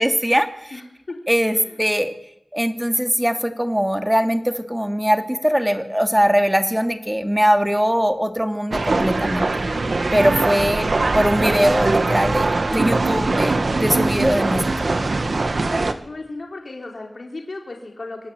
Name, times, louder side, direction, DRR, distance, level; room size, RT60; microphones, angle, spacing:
voice 1, 0.0-0.7 1.3-2.1 2.5-9.5 10.1-14.9, equal, 5° right, 7 dB, 2.7 m, -21 dB
voice 2, 0.7-1.2 1.5-1.8 10.7-11.1 15.6-18.3, left 2 dB, 70° left, 1 dB, 4.4 m, -36 dB
sound 1, 8.7-15.9, right 3 dB, 70° right, 2.2 m, -21 dB
26.0 x 19.0 x 9.2 m, 0.82 s
wide cardioid pair, 55°, 0 cm